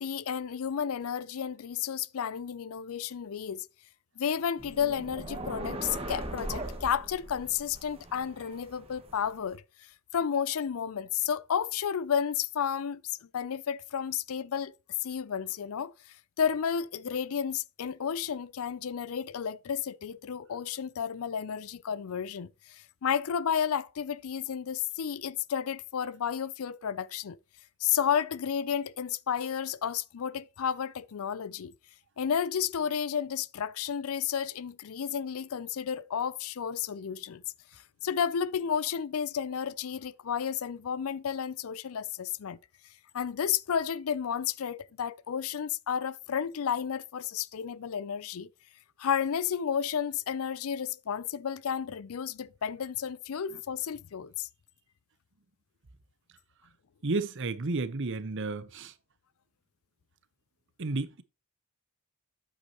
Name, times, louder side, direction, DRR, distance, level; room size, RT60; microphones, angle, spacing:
voice 1, 0.0-3.7 4.2-9.6 10.1-14.7 15.0-15.9 16.4-27.4 27.8-31.7 32.2-37.4 37.7-42.6 43.1-48.5 49.0-54.5, left 8 dB, 70° left, 0.4 m, -32 dB
sound 1, 4.6-9.5, right 1 dB, 25° right, 1.6 m, -40 dB
voice 2, 57.0-58.9 60.8-61.2, right 3 dB, 55° right, 0.8 m, -32 dB
8.7 x 8.3 x 2.9 m
head